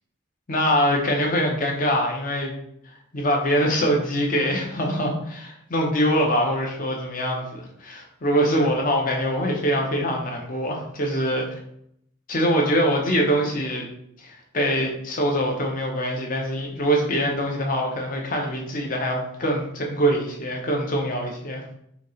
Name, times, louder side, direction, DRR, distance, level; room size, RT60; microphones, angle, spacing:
voice 1, 0.5-2.5 2.9-11.5 12.3-13.9 14.2-21.6, equal, 40° left, 0 dB, 0.8 m, -24 dB
5.0 x 2.4 x 3.1 m, 0.74 s
head